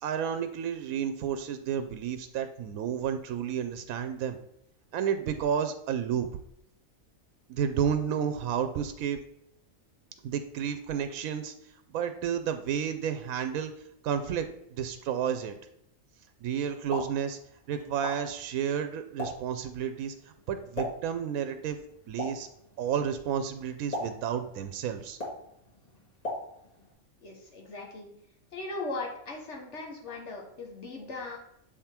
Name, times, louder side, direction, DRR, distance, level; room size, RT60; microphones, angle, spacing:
voice 1, 0.0-4.4 4.9-6.3 7.5-9.2 10.2-11.5 11.9-13.7 14.0-15.5 16.4-17.4 17.7-20.1 20.5-21.8 22.1-22.5 22.8-25.2, right 8 dB, 85° right, 9 dB, 1.0 m, -31 dB
Explosion, 16.7-26.9, left 1 dB, 30° left, 1.7 m, -41 dB
voice 2, 27.2-28.1 28.5-31.4, left 3 dB, 60° left, 1 dB, 1.3 m, -38 dB
7.0 x 3.6 x 4.3 m, 0.74 s
omnidirectional pair, 1.4 m